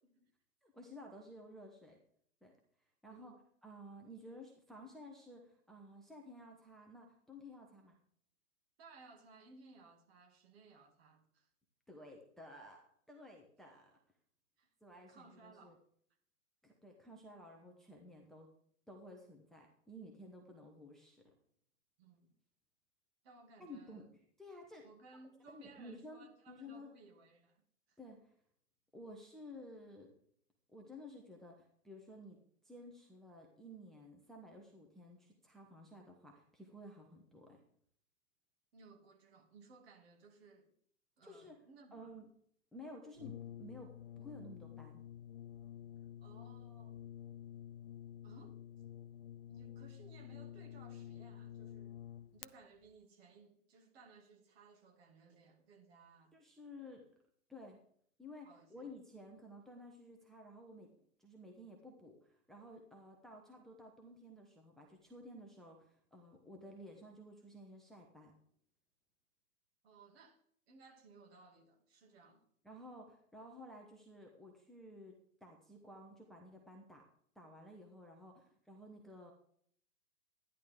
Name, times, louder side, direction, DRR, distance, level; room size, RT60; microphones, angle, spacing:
voice 1, 0.6-2.0 2.4-2.5 3.0-3.3 3.6-8.0 11.9-12.8 13.1-13.9 14.8-15.8 16.6-18.5 18.9-21.3 23.6-24.8 25.5-26.9 28.0-28.3 28.9-30.1 30.7-32.4 32.6-37.6 41.2-41.6 41.9-42.3 42.7-43.9 44.2-45.0 56.3-57.1 57.5-57.8 58.2-60.9 61.2-68.3 72.6-77.0 77.3-79.3, left 1 dB, ahead, 1.0 m, -54 dB
voice 2, 8.8-11.5 14.6-14.7 15.1-15.8 22.0-22.3 23.2-24.0 24.8-28.0 38.7-40.7 41.2-42.1 46.2-47.0 48.2-48.6 49.5-52.0 52.3-56.3 58.4-58.9 69.8-70.4 70.7-72.5, right 3 dB, 45° right, 2.7 m, -61 dB
Brass instrument, 43.2-52.5, left 11 dB, 40° left, 0.4 m, -50 dB
13.0 x 10.5 x 3.7 m
figure-of-eight pair, 115°, 44 cm